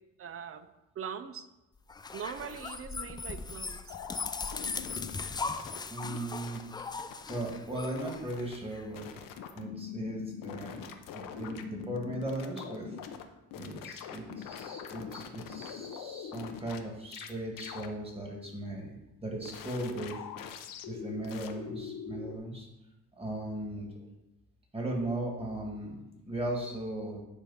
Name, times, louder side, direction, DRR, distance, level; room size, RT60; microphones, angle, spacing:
voice 1, 0.2-0.7 1.0-1.5 2.1-4.0, right 7 dB, 40° right, 12 dB, 0.6 m, -41 dB
sound 1, 1.9-8.8, left 4 dB, 15° left, 0.3 m, -39 dB
sound 2, 3.9-6.2 6.4-7.6 7.8-8.6 8.9-13.2 13.5-16.8 17.1-17.3 17.6-17.9 19.4-22.4, left 8 dB, 75° left, 0.8 m, -43 dB
voice 2, 5.9-6.6 7.3-9.1 9.5-10.8 11.1-13.0 13.5-18.9 19.2-20.3 20.9-22.7 23.2-23.9 24.7-27.2, right 1 dB, 15° right, 0 dB, 2.1 m, -37 dB
9.1 x 3.5 x 5.7 m, 0.97 s
cardioid pair, 95°, 33 cm